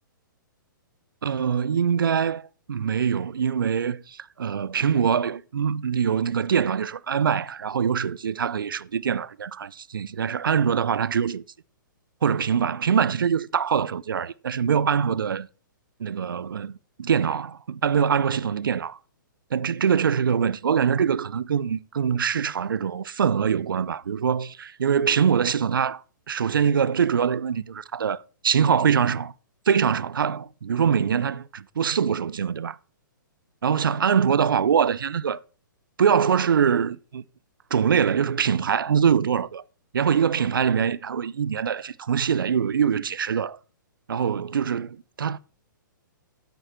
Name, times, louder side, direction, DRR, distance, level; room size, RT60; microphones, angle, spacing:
voice 1, 1.2-11.4 12.2-15.5 16.0-19.0 19.5-29.3 29.7-32.8 33.6-35.4 36.0-37.2 37.7-39.6 39.9-43.6 44.1-45.4, right 7 dB, 80° right, 0.5 m, -23 dB
9.0 x 8.0 x 4.3 m
hypercardioid pair, 125°, 11 cm